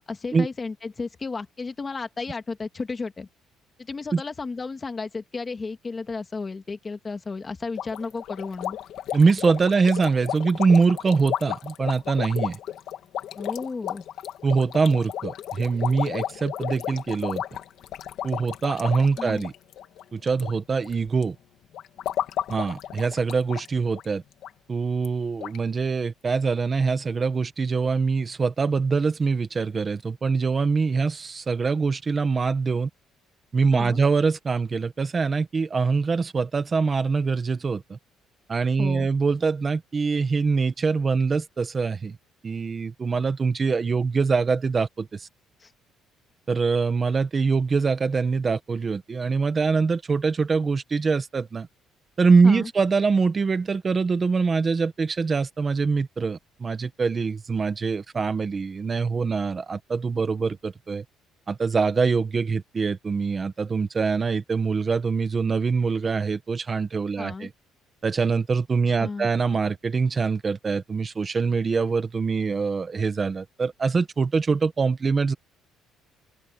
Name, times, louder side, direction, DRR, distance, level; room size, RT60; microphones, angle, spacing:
voice 1, 0.1-3.3 3.9-8.8 13.4-14.0 19.2-19.5 33.7-34.0 38.8-39.1 45.6-45.7 52.4-52.7 67.2-67.5 69.0-69.3, left 4 dB, 20° left, 1.9 m, -33 dB
sound 1, 7.8-20.5 20.8-21.2 21.7-23.7 23.9-24.0 24.4-24.5 25.0-25.1 25.4-25.6, left 11 dB, 55° left, 1.8 m, -33 dB
voice 2, 9.1-12.6 14.4-17.4 18.2-19.5 20.1-21.3 22.5-24.2 24.7-32.9 33.5-38.0 38.5-42.2 42.4-45.3 46.5-51.7 52.2-61.0 61.5-67.5 68.0-75.3, right 4 dB, 25° right, 1.5 m, -24 dB
open air
cardioid pair, 170°, 0 cm